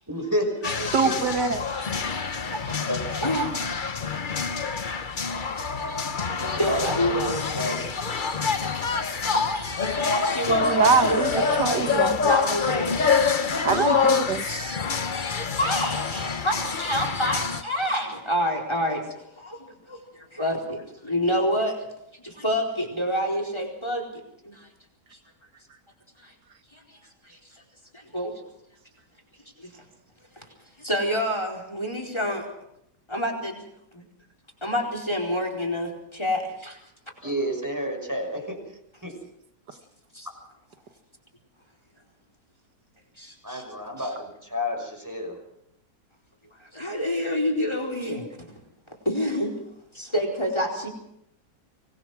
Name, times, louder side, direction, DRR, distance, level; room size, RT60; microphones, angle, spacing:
voice 1, 0.1-0.5 1.0-1.1 2.9-3.2 5.2-7.9 37.2-38.6 39.0-39.2 40.2-40.3 43.4-45.4, equal, 10° right, 3 dB, 5.8 m, -31 dB
sound 1, 0.6-17.6, left 5 dB, 35° left, 1.0 m, -26 dB
voice 2, 0.9-1.6 10.6-12.2 13.6-14.8 16.1-16.2, right 5 dB, 80° right, 7 dB, 2.1 m, -24 dB
voice 3, 3.2-3.5 4.0-4.1 5.3-7.5 8.5-8.9 9.2-14.0 15.1-16.2 16.4-21.8 22.2-24.7 26.2-26.3 26.7-26.8 27.2-27.4 27.9-28.3 29.6-29.7 30.4-30.5 30.8-32.5 33.1-33.6 33.9-34.0 34.6-36.8 40.1-40.3 43.2-43.6 46.7-48.5 49.0-49.5 49.9-50.9, equal, 15° left, 1 dB, 4.5 m, -28 dB
24.5 x 20.0 x 6.2 m, 0.78 s
omnidirectional pair, 1.8 m